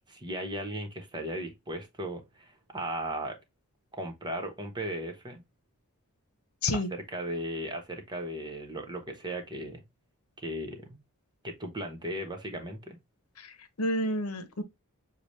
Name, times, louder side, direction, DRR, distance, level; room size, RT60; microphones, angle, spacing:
voice 1, 0.1-3.4 3.9-5.4 6.7-9.8 10.4-11.0 11.4-13.0, right 1 dB, 20° right, 1.1 m, -36 dB
voice 2, 13.4-14.6, left 1 dB, 70° left, 1.0 m, -30 dB
6.8 x 2.4 x 3.2 m
head